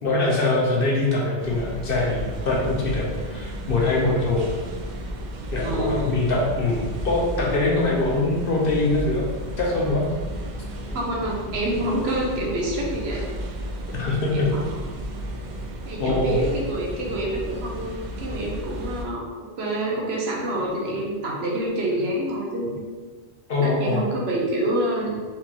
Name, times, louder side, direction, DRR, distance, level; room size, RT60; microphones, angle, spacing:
voice 1, 0.0-4.5 5.5-9.2 9.6-10.0 13.9-14.5 16.0-16.4 23.5-24.1, left 2 dB, 55° left, -3 dB, 1.0 m, -23 dB
sound 1, 1.4-19.1, right 1 dB, 55° right, 0.6 m, -33 dB
voice 2, 5.6-6.1 10.9-13.3 14.3-14.8 15.9-19.2 19.6-22.8 23.6-25.2, right 1 dB, 70° right, -2 dB, 1.1 m, -27 dB
4.4 x 3.6 x 2.9 m, 1.4 s
omnidirectional pair, 1.1 m